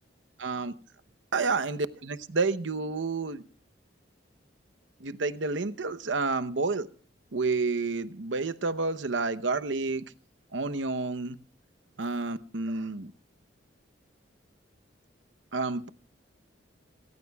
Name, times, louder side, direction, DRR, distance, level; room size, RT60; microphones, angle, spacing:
voice 1, 0.4-0.7 1.3-3.4 5.0-6.9 7.3-10.0 10.5-11.4 12.0-13.1 15.5-15.9, right 3 dB, 75° right, 12 dB, 0.9 m, -29 dB
26.5 x 15.0 x 2.3 m, 0.40 s
head